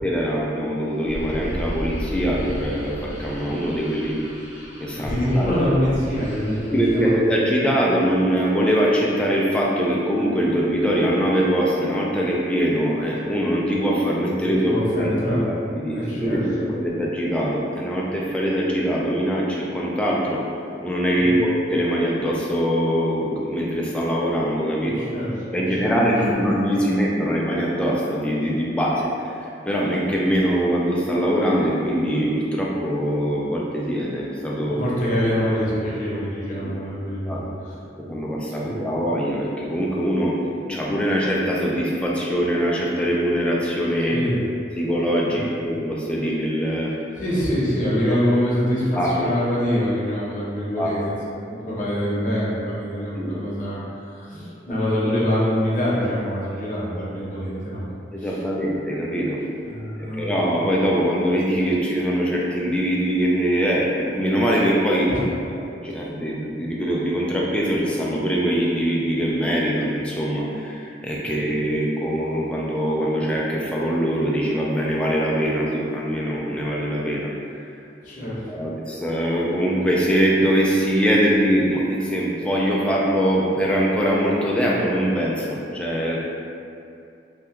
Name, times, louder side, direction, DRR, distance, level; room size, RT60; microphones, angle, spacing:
voice 1, 0.0-4.2 4.8-5.5 6.7-20.4 20.8-25.0 25.5-29.4 29.7-34.8 36.6-36.8 37.3-37.4 38.0-44.2 44.8-46.9 49.0-49.3 50.8-51.0 53.1-53.4 54.7-54.8 58.1-59.4 60.0-65.1 65.5-77.3 78.2-86.2, equal, 5° left, -5 dB, 0.3 m, -22 dB
sound 1, 1.0-7.1, equal, 80° right, 1.2 m, -33 dB
voice 2, 4.9-7.1 14.4-15.4 15.9-16.7 21.2-21.5 24.8-25.9 34.7-37.7 38.6-38.8 44.1-44.4 45.3-45.5 47.2-51.0 51.3-57.8 58.2-58.4 59.7-60.6 65.1-65.2 71.2-71.5 78.0-78.4, equal, 45° left, -7 dB, 0.7 m, -25 dB
2.8 x 2.2 x 3.4 m, 2.5 s
head